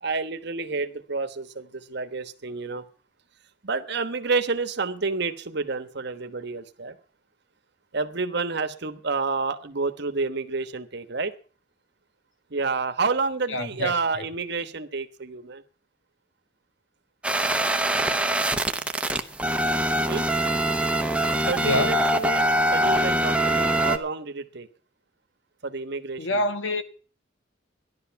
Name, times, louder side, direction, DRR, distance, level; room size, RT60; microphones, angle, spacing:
voice 1, 0.0-2.8 3.6-7.0 7.9-11.3 12.5-15.6 20.1-20.3 21.4-22.4 22.7-24.7 25.6-26.4, right 4 dB, 60° right, 1.2 m, -29 dB
voice 2, 13.5-14.2 21.5-22.0 26.2-26.8, left 1 dB, 80° left, 1.5 m, -27 dB
sound 1, 17.2-24.0, right 1 dB, 5° right, 1.0 m, -23 dB
14.0 x 11.5 x 5.8 m
head